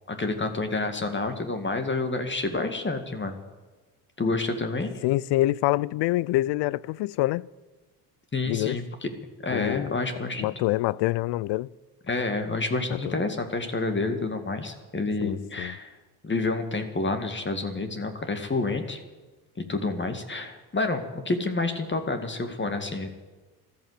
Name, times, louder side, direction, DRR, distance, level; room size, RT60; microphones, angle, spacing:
voice 1, 0.1-3.4 4.2-4.9 8.3-9.1 9.4-10.5 12.1-16.0 16.2-19.0 19.7-23.1, left 3 dB, 25° left, 2.1 m, -29 dB
voice 2, 5.0-7.5 8.5-8.8 9.5-10.0 10.4-11.7 12.9-13.2 15.2-15.8, left 17 dB, 65° left, 0.5 m, -26 dB
14.0 x 12.0 x 8.2 m
hypercardioid pair, 65°, 45 cm